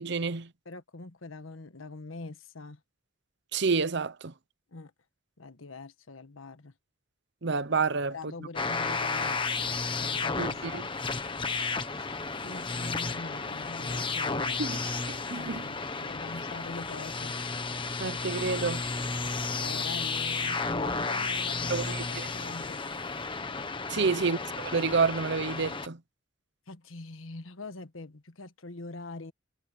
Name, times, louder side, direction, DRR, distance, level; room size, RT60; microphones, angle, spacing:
voice 1, 0.0-0.5 3.5-4.3 7.4-8.1 10.4-10.8 14.6-14.8 15.1-15.6 18.0-18.8 21.7-22.3 23.9-26.0, right 4 dB, 60° right, 0.8 m, -29 dB
voice 2, 0.6-2.8 4.7-4.9 5.4-6.7 8.1-9.5 10.0-10.8 11.2-11.6 11.9-14.8 15.3-17.4 19.2-22.8 23.9-24.0 26.7-29.3, left 3 dB, 90° left, 1.5 m, -43 dB
sound 1, 8.6-25.9, left 4 dB, 25° left, 1.4 m, -33 dB
head